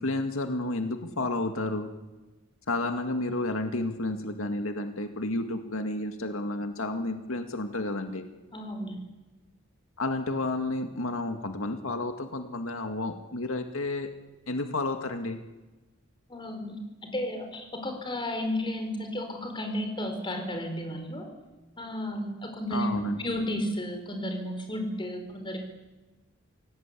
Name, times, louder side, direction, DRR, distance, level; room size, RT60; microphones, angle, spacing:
voice 1, 0.0-1.9 2.7-8.2 10.0-14.1 14.5-15.4 22.7-23.4, left 2 dB, 90° left, 6 dB, 2.0 m, -31 dB
voice 2, 8.5-9.0 16.3-16.7 17.1-21.3 21.8-25.6, left 1 dB, 25° left, 4 dB, 4.7 m, -33 dB
26.5 x 18.0 x 8.5 m, 1.1 s
head